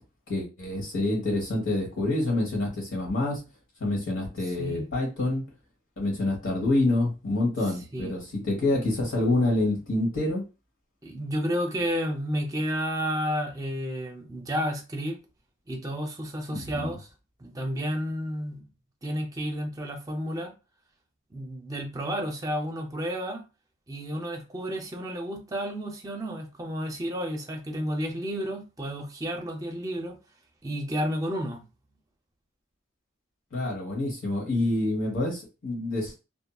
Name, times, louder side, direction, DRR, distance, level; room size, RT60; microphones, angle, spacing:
voice 1, 0.3-3.4 3.8-5.4 6.0-10.4 16.5-17.0 33.5-36.2, left 2 dB, 80° left, 1.3 m, -27 dB
voice 2, 4.6-4.9 7.9-8.1 11.0-15.2 15.7-17.1 17.4-18.6 19.0-20.5 21.3-23.4 23.9-30.2 30.6-31.6, equal, 20° right, 0.6 m, -31 dB
2.7 x 2.6 x 2.3 m
head